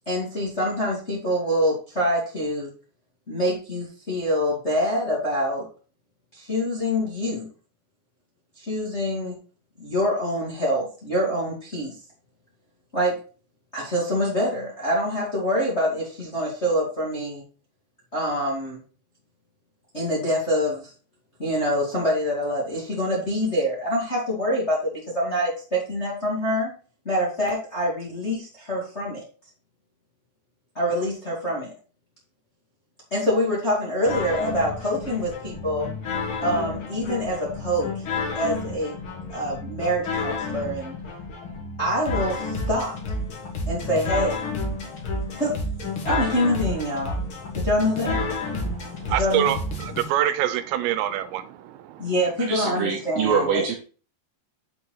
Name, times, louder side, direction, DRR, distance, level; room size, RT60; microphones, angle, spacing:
voice 1, 0.0-2.7 3.3-5.6 6.3-7.5 8.6-9.3 9.8-11.9 12.9-13.2 13.7-17.4 18.1-18.8 19.9-20.9 21.4-26.7 27.0-29.2 30.7-31.7 33.1-35.9 36.4-37.9 38.3-39.0 39.3-40.9 41.8-43.0 43.6-44.4 45.4-45.6 46.0-47.2 47.5-48.2 49.1-49.5 52.0-53.6, equal, 25° left, -4 dB, 1.5 m, -25 dB
sound 1, 34.1-50.0, left 2 dB, 70° left, 1.2 m, -30 dB
voice 2, 48.6-52.1, right 11 dB, 90° right, 13 dB, 2.9 m, -26 dB
voice 3, 52.4-53.8, right 6 dB, 70° right, 3 dB, 2.2 m, -24 dB
7.4 x 5.8 x 3.9 m, 0.37 s
omnidirectional pair, 5.0 m